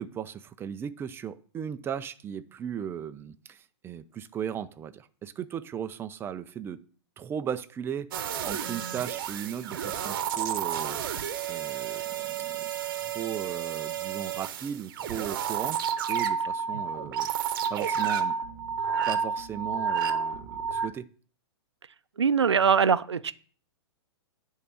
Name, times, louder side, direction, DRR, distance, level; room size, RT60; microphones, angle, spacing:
voice 1, 0.0-6.8 7.2-11.0 11.5-15.8 16.1-18.3 19.1-21.1, right 8 dB, 15° right, 12 dB, 0.5 m, -37 dB
sound 1, 8.1-20.9, right 7 dB, 50° right, 1.0 m, -31 dB
voice 2, 22.2-23.3, right 6 dB, 80° right, 14 dB, 0.6 m, -22 dB
10.0 x 3.7 x 6.9 m, 0.42 s
figure-of-eight pair, 110°, 14 cm